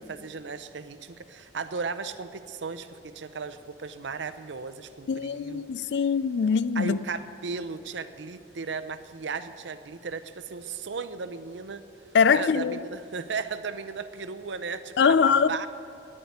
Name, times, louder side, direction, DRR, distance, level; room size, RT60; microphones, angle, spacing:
voice 1, 0.0-5.7 6.7-11.8 12.3-15.7, right 5 dB, 90° right, 0.6 m, -36 dB
voice 2, 5.1-7.0 12.1-12.8 15.0-15.5, left 6 dB, 75° left, 0.4 m, -22 dB
11.0 x 9.9 x 9.3 m
head